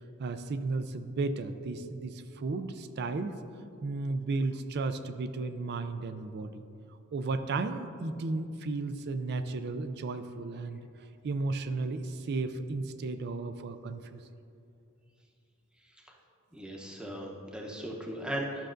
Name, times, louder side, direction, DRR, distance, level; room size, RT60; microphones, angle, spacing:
voice 1, 0.2-3.4 3.8-6.5 7.1-10.8 11.2-14.2, right 3 dB, 50° right, 10 dB, 0.4 m, -34 dB
voice 2, 16.5-18.7, right 1 dB, 5° right, -1 dB, 0.8 m, -37 dB
11.5 x 6.4 x 2.5 m, 2.6 s
head